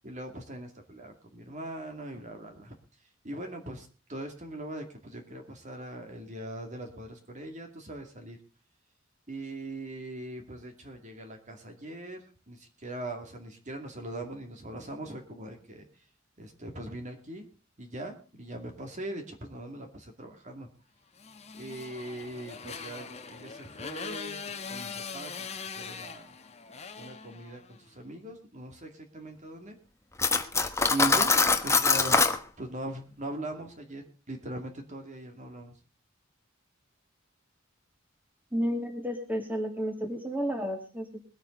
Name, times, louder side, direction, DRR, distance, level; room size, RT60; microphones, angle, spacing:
voice 1, 0.0-2.8 3.2-8.4 9.3-15.9 16.4-17.5 17.8-20.7 21.5-24.4 24.7-26.3 27.0-29.8 30.9-31.3 31.6-32.2 32.6-35.7, right 1 dB, 40° right, 3 dB, 2.4 m, -40 dB
Motorcycle, 21.2-27.9, left 5 dB, 35° left, 1.2 m, -41 dB
Cutlery silverware, 30.2-32.4, left 4 dB, 15° left, 1.1 m, -23 dB
voice 2, 38.5-41.2, equal, 10° right, 4 dB, 2.3 m, -32 dB
21.5 x 8.9 x 3.9 m, 0.35 s
head